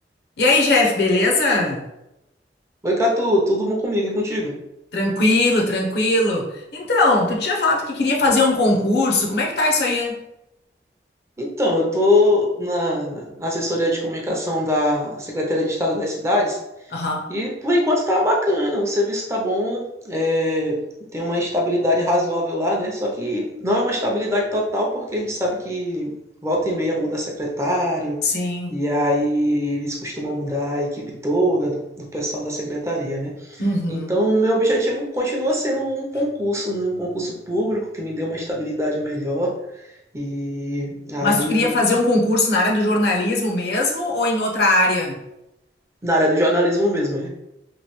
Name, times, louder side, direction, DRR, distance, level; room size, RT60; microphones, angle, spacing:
voice 1, 0.4-1.9 4.9-10.2 16.9-17.3 28.2-28.8 33.6-34.1 41.2-45.2, left 2 dB, 70° left, -1 dB, 0.7 m, -20 dB
voice 2, 2.8-4.5 11.4-16.6 17.3-20.8 21.1-26.1 26.4-28.2 28.7-33.6 33.9-39.9 40.1-41.7 46.0-47.3, equal, 15° right, -2 dB, 0.5 m, -22 dB
3.0 x 2.6 x 3.0 m, 0.89 s
head